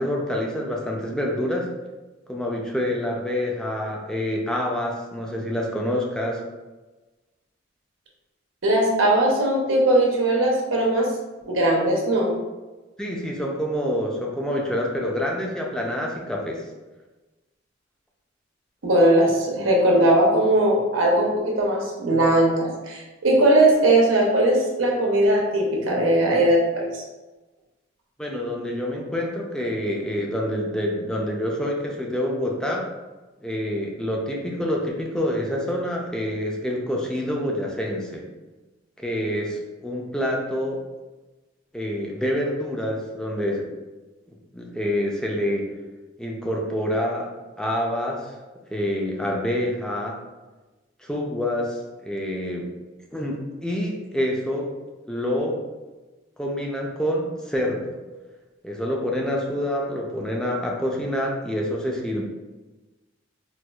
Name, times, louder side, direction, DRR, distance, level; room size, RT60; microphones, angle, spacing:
voice 1, 0.0-1.7 2.3-6.4 13.0-16.6 28.2-32.9 33.4-38.2 39.0-40.8 41.7-43.7 44.5-45.7 46.2-47.3 47.6-48.3 48.7-50.2 51.0-52.7 53.1-54.7 55.1-55.6 56.4-57.9 58.6-62.3, equal, 5° left, -1 dB, 0.4 m, -27 dB
voice 2, 8.6-11.1 11.5-12.3 18.8-27.0, right 1 dB, 85° right, -1 dB, 0.8 m, -19 dB
4.3 x 2.3 x 2.3 m, 1.2 s
head